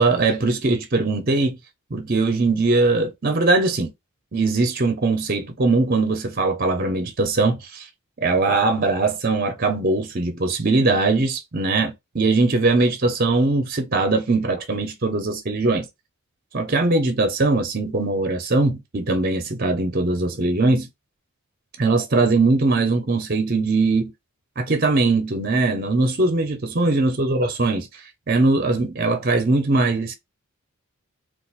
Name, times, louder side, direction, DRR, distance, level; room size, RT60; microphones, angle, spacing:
voice 1, 0.0-1.6 1.9-3.9 4.3-7.9 8.2-15.9 16.5-20.9 21.8-24.1 24.6-30.1, right 3 dB, 40° right, 0.7 m, -21 dB
4.0 x 2.5 x 2.4 m
head